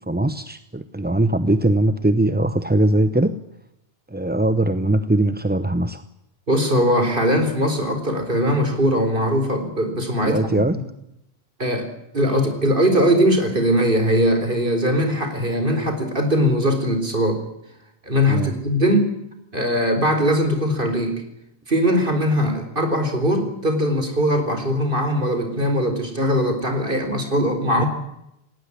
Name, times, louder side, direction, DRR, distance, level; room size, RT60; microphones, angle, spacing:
voice 1, 0.1-3.4 4.1-6.0 10.2-10.8 18.3-18.6 27.8-27.9, right 1 dB, 10° right, 11 dB, 0.7 m, -20 dB
voice 2, 6.5-10.6 11.6-11.9 12.1-17.4 18.1-19.1 19.5-21.2 21.7-27.9, equal, 55° right, 7 dB, 4.4 m, -20 dB
18.5 x 18.5 x 9.9 m, 0.84 s
omnidirectional pair, 1.1 m